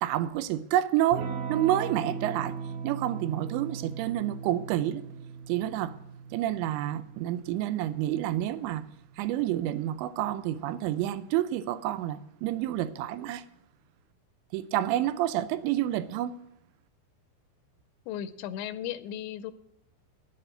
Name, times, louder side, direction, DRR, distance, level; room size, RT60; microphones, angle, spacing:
voice 1, 0.0-2.6 2.8-5.0 5.5-6.0 6.3-8.8 9.2-13.4 14.5-16.3, right 12 dB, 85° right, 2.9 m, -29 dB
Electric guitar / Strum, 1.1-9.4, right 5 dB, 70° right, 3.0 m, -39 dB
voice 2, 18.1-19.5, left 10 dB, 90° left, 2.9 m, -36 dB
11.0 x 7.9 x 7.7 m
omnidirectional pair, 5.1 m